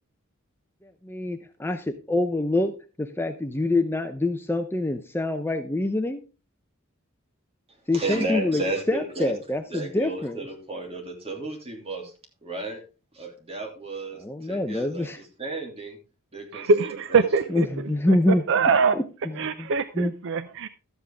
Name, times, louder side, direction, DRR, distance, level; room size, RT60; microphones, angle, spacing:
voice 1, 1.0-2.7 3.0-6.2 7.9-8.6 8.9-10.4 14.2-15.2 17.5-18.4 19.6-19.7 20.0-20.1, left 1 dB, 10° left, 0.6 m, -25 dB
voice 2, 7.9-9.3 9.7-12.1 12.4-12.8 13.1-16.0 16.3-17.3, right 2 dB, 30° right, 3.0 m, -33 dB
voice 3, 16.5-19.0 19.3-20.7, right 4 dB, 60° right, 0.6 m, -23 dB
13.0 x 8.1 x 3.6 m
head